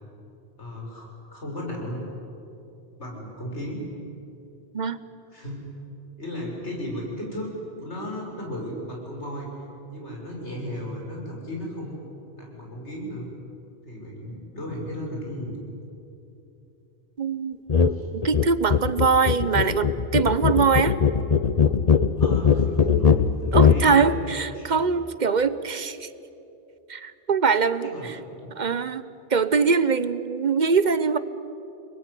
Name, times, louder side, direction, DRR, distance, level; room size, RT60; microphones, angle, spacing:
voice 1, 0.6-2.0 3.0-3.8 5.3-5.6 6.2-9.5 9.9-12.0 12.3-13.3 13.9-15.6 17.9-18.1 22.2-24.1 24.5-24.8 27.8-28.5, left 1 dB, 80° left, -1 dB, 6.5 m, -35 dB
voice 2, 17.2-17.6 18.1-21.0 23.5-26.1 26.9-28.2 28.6-31.2, right 5 dB, 45° right, 14 dB, 1.0 m, -23 dB
sound 1, 17.7-18.0 18.2-23.8, left 6 dB, 35° left, 0.8 m, -20 dB
28.5 x 21.0 x 9.9 m, 2.9 s
omnidirectional pair, 1.1 m